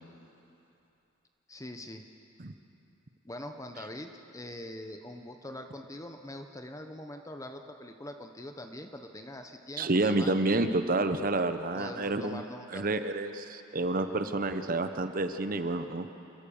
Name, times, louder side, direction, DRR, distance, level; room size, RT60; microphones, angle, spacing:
voice 1, 1.5-2.0 3.2-10.3 11.7-13.0, left 1 dB, 15° left, 5 dB, 0.9 m, -43 dB
voice 2, 9.8-12.4 12.7-16.1, right 2 dB, 40° right, 9 dB, 0.9 m, -29 dB
28.0 x 15.0 x 7.1 m, 2.9 s
head